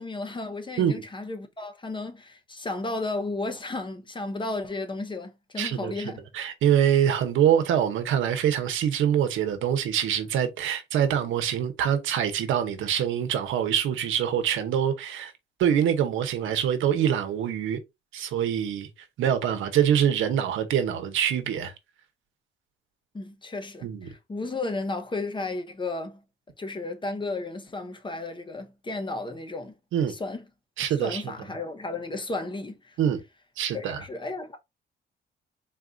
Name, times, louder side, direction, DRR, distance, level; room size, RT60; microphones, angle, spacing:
voice 1, 0.0-6.2 23.1-26.2 26.6-29.7 30.1-30.4 31.0-33.0 33.6-34.6, left 2 dB, 25° left, 0.9 m, -33 dB
voice 2, 5.6-5.9 6.3-15.3 15.6-17.8 18.1-18.9 19.2-21.7 23.8-24.1 29.9-30.1 30.8-31.2 33.0-33.2 33.6-34.0, right 9 dB, 80° right, 0.9 m, -24 dB
4.1 x 2.4 x 3.9 m
cardioid pair, 90°, 20 cm